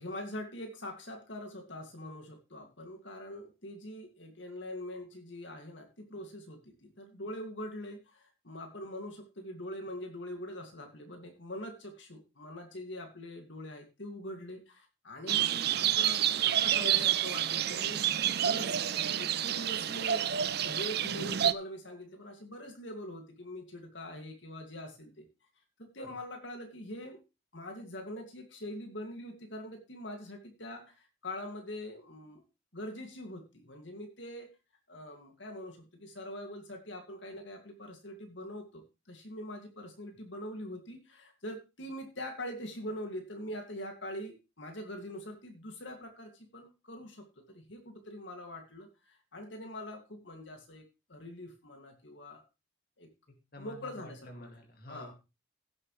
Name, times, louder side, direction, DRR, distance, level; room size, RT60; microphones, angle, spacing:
voice 1, 0.0-18.0 18.4-18.8 19.2-25.3 25.9-27.2 27.5-32.4 32.7-34.5 34.9-50.8 51.1-52.4 53.0-53.1 53.6-54.5 54.9-55.1, left 1 dB, 70° left, 4 dB, 2.2 m, -43 dB
sound 1, 15.3-21.5, right 10 dB, 55° right, 0.5 m, -29 dB
voice 2, 53.5-55.1, left 1 dB, 50° left, 4 dB, 2.3 m, -49 dB
16.5 x 7.8 x 3.2 m, 0.28 s
head